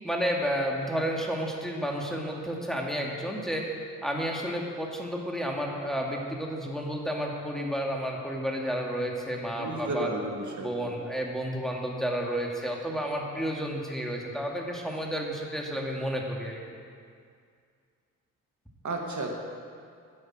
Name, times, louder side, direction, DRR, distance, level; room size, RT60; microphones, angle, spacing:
voice 1, 0.0-3.6 4.0-10.1 10.6-16.6, equal, ahead, -1 dB, 2.2 m, -31 dB
voice 2, 9.6-10.9 18.8-19.3, right 2 dB, 50° right, 1 dB, 1.7 m, -33 dB
10.5 x 6.4 x 7.8 m, 2.2 s
supercardioid pair, 50°, 37 cm